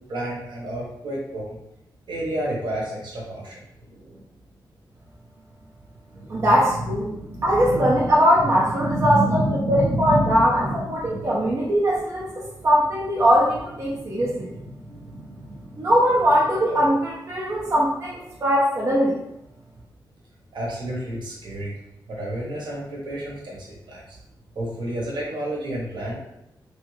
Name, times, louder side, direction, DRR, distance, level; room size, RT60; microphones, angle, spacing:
voice 1, 0.1-1.6 2.1-4.2 6.1-11.3 13.9-15.9 20.5-21.7 22.1-24.2 24.5-26.1, right 1 dB, 70° right, -3 dB, 1.0 m, -30 dB
voice 2, 6.3-7.1 7.4-9.4 9.7-14.5 15.8-19.2, equal, 35° right, -5 dB, 0.6 m, -21 dB
3.1 x 2.6 x 3.1 m, 0.83 s
wide cardioid pair, 170°, 8 cm